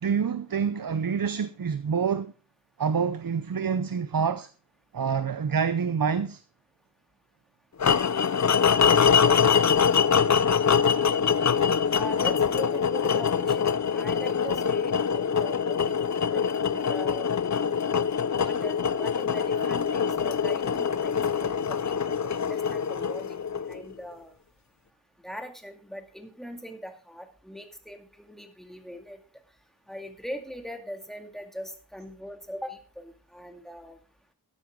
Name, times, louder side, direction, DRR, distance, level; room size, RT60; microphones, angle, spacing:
voice 1, 0.0-2.3 2.8-4.5 4.9-6.4 19.6-19.7, right 6 dB, 65° right, 0.7 m, -27 dB
sound 1, 7.8-23.9, left 7 dB, 50° left, 0.5 m, -24 dB
voice 2, 11.9-17.3 18.3-24.3 25.2-29.2 29.9-34.0, equal, ahead, 2.2 m, -41 dB
13.0 x 10.5 x 3.7 m
wide cardioid pair, 60°, 37 cm